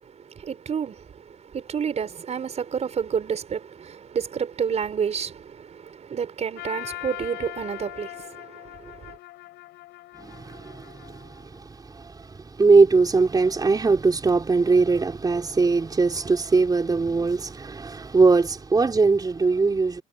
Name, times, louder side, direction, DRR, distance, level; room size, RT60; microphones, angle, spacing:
voice 1, 0.0-9.2, right 7 dB, 40° right, 5.2 m, -30 dB
Trumpet, 6.6-11.6, left 17 dB, 85° left, 6.4 m, -41 dB
voice 2, 10.2-20.0, right 4 dB, 25° right, 4.7 m, -21 dB
cardioid pair, 110°, 17 cm